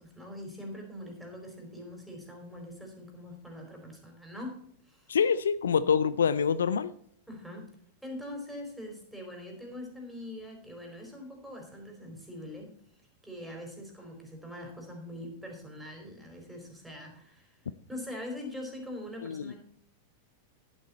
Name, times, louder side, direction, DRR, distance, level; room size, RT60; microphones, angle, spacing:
voice 1, 0.0-4.6 4.9-5.2 7.3-7.7 8.0-12.7 13.2-17.6 17.9-19.6, left 1 dB, ahead, 1 dB, 4.5 m, -43 dB
voice 2, 5.1-6.9 19.2-19.5, left 6 dB, 80° left, 17 dB, 0.4 m, -26 dB
10.5 x 9.2 x 4.2 m, 0.64 s
hypercardioid pair, 100°, 0 cm